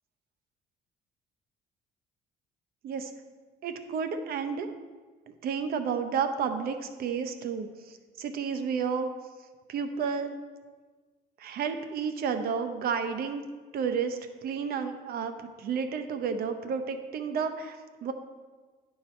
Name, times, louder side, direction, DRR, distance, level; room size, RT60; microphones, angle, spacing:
voice 1, 3.6-4.7 5.4-7.7 8.2-9.1 9.7-10.3 11.4-13.4 13.7-15.3 15.6-18.1, right 6 dB, 65° right, 8 dB, 0.8 m, -31 dB
10.5 x 4.7 x 4.3 m, 1.4 s
cardioid pair, 110°, 17 cm